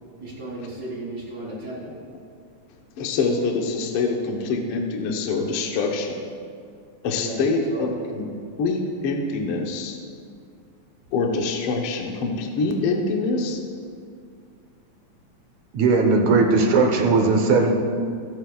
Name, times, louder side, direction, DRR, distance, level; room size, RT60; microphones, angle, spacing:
voice 1, 0.2-2.0 7.2-7.9, right 1 dB, 35° right, -5 dB, 3.4 m, -35 dB
voice 2, 3.0-6.2 7.0-8.3 8.6-10.0 11.1-13.6, left 3 dB, 60° left, 1 dB, 1.6 m, -25 dB
voice 3, 15.7-17.7, right 3 dB, 75° right, 2 dB, 2.3 m, -18 dB
23.0 x 8.2 x 2.4 m, 2.3 s
omnidirectional pair, 3.3 m